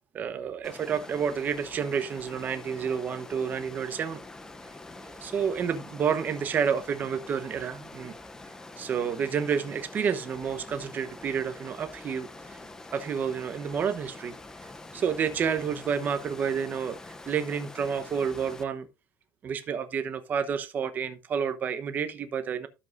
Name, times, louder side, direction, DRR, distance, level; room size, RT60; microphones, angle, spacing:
voice 1, 0.1-4.2 5.0-8.1 8.8-12.6 12.9-14.4 14.9-18.9 19.4-22.7, right 7 dB, 25° right, 0.9 m, -30 dB
Water, 0.6-18.6, left 2 dB, 10° left, 0.5 m, -45 dB
12.5 x 6.9 x 2.5 m
cardioid pair, 175°, 7 cm